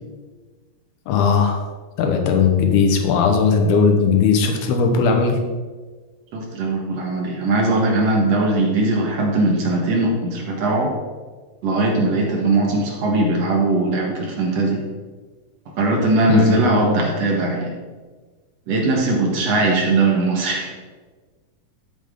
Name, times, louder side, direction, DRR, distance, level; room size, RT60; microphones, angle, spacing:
voice 1, 1.1-1.6 2.0-5.4 16.3-16.6, left 5 dB, 80° left, 3 dB, 3.0 m, -17 dB
voice 2, 6.3-10.9 11.6-14.8 15.8-17.7 18.7-20.7, right 2 dB, 55° right, -1 dB, 2.1 m, -20 dB
12.0 x 7.2 x 3.7 m, 1.4 s
omnidirectional pair, 4.5 m